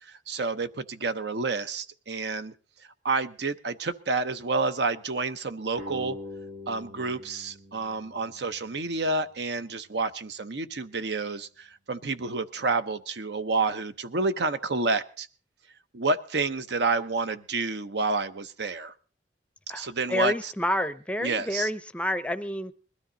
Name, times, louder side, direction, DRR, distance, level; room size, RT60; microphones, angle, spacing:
voice 1, 0.0-2.5 3.0-6.2 6.7-15.3 15.9-18.9 19.7-20.5 21.2-21.7, right 3 dB, 65° right, 11 dB, 0.8 m, -29 dB
sound 1, 5.8-9.0, left 1 dB, 80° right, 2.1 m, -43 dB
voice 2, 19.7-22.7, left 1 dB, 5° left, 12 dB, 0.6 m, -29 dB
21.0 x 13.0 x 3.9 m, 0.39 s
head